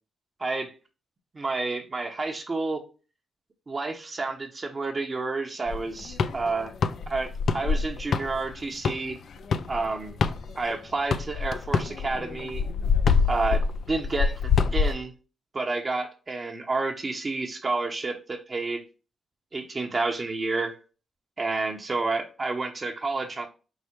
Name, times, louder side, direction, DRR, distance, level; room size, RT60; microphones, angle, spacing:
voice 1, 0.4-0.7 1.3-2.8 3.7-6.7 7.1-9.2 9.7-10.2 10.6-12.6 13.3-13.6 13.9-14.3 14.7-15.1 15.5-18.8 19.5-20.8 21.4-23.5, right 3 dB, 40° right, 3 dB, 0.8 m, -29 dB
sound 1, 5.7-10.7 11.1-14.9, left 5 dB, 65° left, 0.3 m, -25 dB
4.7 x 2.1 x 4.3 m, 0.33 s
supercardioid pair, 60°, 0 cm